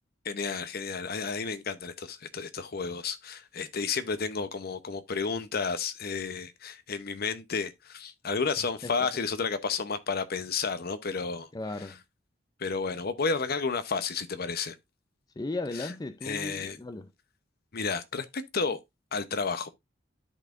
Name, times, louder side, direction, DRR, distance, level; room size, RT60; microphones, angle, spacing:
voice 1, 0.2-11.5 11.8-12.0 12.6-14.8 15.7-15.9 16.2-16.8 17.7-18.8 19.1-19.7, left 5 dB, 50° left, 0.8 m, -32 dB
voice 2, 11.5-12.0 15.4-17.1, left 2 dB, 20° left, 0.4 m, -36 dB
12.0 x 4.2 x 2.5 m
head